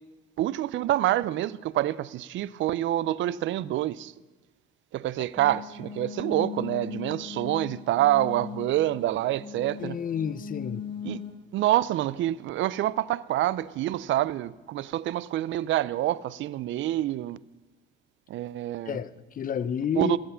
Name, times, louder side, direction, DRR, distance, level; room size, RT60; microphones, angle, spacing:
voice 1, 0.4-4.1 4.9-10.0 11.0-11.2 11.5-17.4 18.3-19.0 20.0-20.2, right 14 dB, 65° right, 0.4 m, -27 dB
sound 1, 5.3-11.3, left 7 dB, 25° left, 3.7 m, -39 dB
voice 2, 9.8-10.8 18.9-20.2, left 8 dB, 40° left, 0.6 m, -30 dB
15.0 x 7.9 x 5.6 m
cardioid pair, 80°, 21 cm